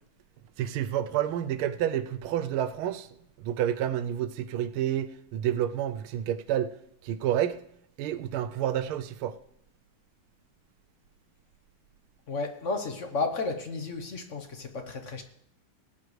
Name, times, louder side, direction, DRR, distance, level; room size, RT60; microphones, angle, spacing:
voice 1, 0.6-3.1 3.4-6.7 7.0-7.6 8.0-9.3, right 11 dB, 90° right, 1.5 m, -29 dB
voice 2, 12.3-15.2, left 3 dB, 50° left, 1.0 m, -32 dB
18.5 x 9.4 x 3.2 m
omnidirectional pair, 2.3 m